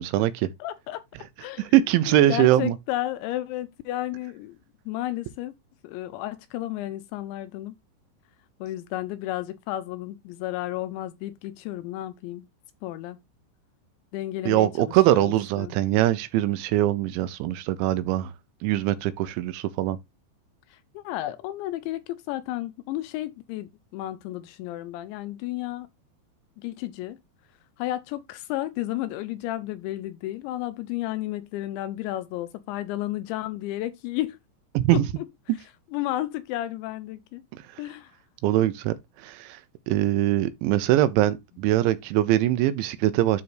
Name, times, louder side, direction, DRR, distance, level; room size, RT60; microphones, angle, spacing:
voice 1, 0.0-0.5 1.6-2.8 14.5-18.3 18.6-20.0 34.8-35.1 38.4-38.9 39.2-39.6 39.9-43.4, right 14 dB, 80° right, 2.9 m, -22 dB
voice 2, 0.6-1.7 2.1-4.6 4.9-5.5 5.8-7.7 8.6-12.5 12.8-13.2 14.1-15.3 15.6-15.7 20.7-25.9 26.6-27.2 27.8-34.4 34.9-35.3 35.9-37.4 37.8-38.1, left 14 dB, 80° left, 2.7 m, -32 dB
12.0 x 4.1 x 3.2 m
omnidirectional pair, 5.5 m